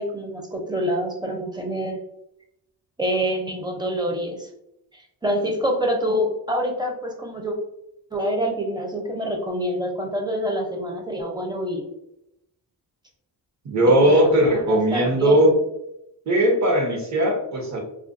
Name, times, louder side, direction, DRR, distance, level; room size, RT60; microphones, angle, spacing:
voice 1, 0.0-2.0 3.0-4.5 4.9-7.5 8.1-11.9 14.0-14.1 14.5-15.5, equal, 10° right, 1 dB, 0.5 m, -26 dB
voice 2, 13.6-15.5 16.3-17.8, right 1 dB, 45° right, 1 dB, 0.9 m, -18 dB
2.3 x 2.2 x 2.5 m, 0.81 s
cardioid pair, 85°, 40 cm